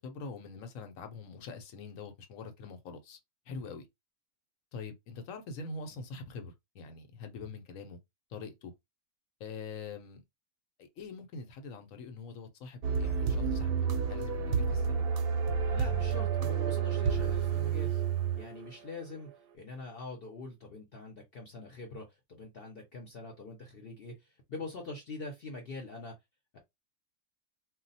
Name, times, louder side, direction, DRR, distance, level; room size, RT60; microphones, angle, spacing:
voice 1, 0.0-3.2 3.5-3.9 4.7-8.0 8.3-8.7 9.4-10.2 11.0-15.0, left 4 dB, 75° left, 1.0 m, -44 dB
sound 1, 12.8-18.9, right 6 dB, 60° right, 0.7 m, -30 dB
voice 2, 15.7-18.0 18.3-19.3 19.5-26.1 26.5-26.6, left 3 dB, 50° left, 0.8 m, -44 dB
2.3 x 2.2 x 3.9 m
omnidirectional pair, 1.4 m